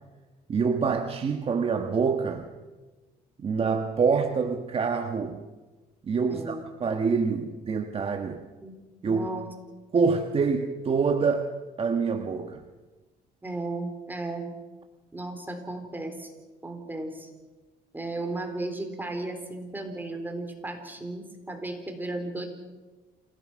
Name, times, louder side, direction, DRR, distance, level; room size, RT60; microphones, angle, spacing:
voice 1, 0.5-2.5 3.4-5.4 6.1-8.4 9.0-9.3 9.9-11.5 11.8-12.6, right 5 dB, 35° right, 5 dB, 1.4 m, -26 dB
voice 2, 6.3-6.7 8.6-8.7 9.0-9.5 13.4-14.5 15.1-16.3 16.6-17.3 17.9-22.5, right 2 dB, 10° right, 5 dB, 4.1 m, -35 dB
28.0 x 17.5 x 6.3 m, 1.2 s
cardioid pair, 110°, 17 cm